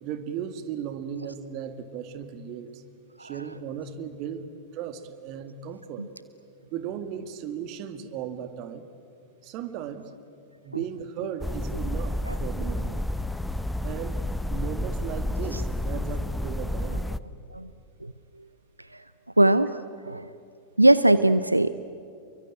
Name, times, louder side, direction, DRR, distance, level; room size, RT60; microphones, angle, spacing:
voice 1, 0.0-2.8 3.2-4.5 4.7-6.1 6.7-8.8 9.4-10.1 10.6-13.1 13.8-17.1, right 8 dB, 40° right, 10 dB, 2.0 m, -36 dB
sound 1, 11.4-17.2, left 1 dB, 5° left, 0.7 m, -30 dB
voice 2, 19.4-19.8 20.0-20.3 20.8-21.8, right 1 dB, 85° right, 14 dB, 0.6 m, -20 dB
28.5 x 23.5 x 9.0 m, 2.5 s
figure-of-eight pair, 90°, 0 cm